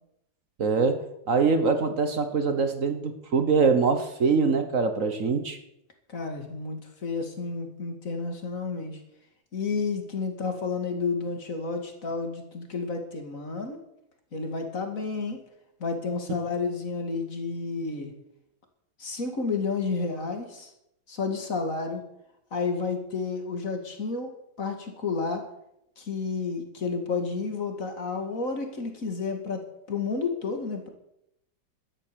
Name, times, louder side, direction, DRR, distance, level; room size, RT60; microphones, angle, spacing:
voice 1, 0.6-5.6, right 4 dB, 45° right, 9 dB, 1.4 m, -24 dB
voice 2, 6.1-9.0 9.5-13.8 14.3-15.4 15.8-18.1 19.0-20.7 21.1-22.0 22.5-24.3 24.6-25.5 26.0-30.9, left 4 dB, 40° left, 5 dB, 2.4 m, -31 dB
13.0 x 10.5 x 6.9 m, 0.80 s
omnidirectional pair, 2.2 m